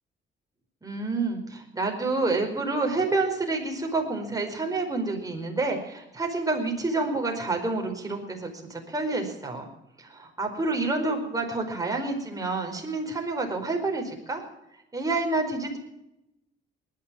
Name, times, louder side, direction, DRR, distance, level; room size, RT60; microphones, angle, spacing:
voice 1, 0.8-9.7 10.0-14.4 14.9-15.8, right 3 dB, 15° right, 2 dB, 4.8 m, -28 dB
20.0 x 10.5 x 6.2 m, 0.88 s
cardioid pair, 90°, 20 cm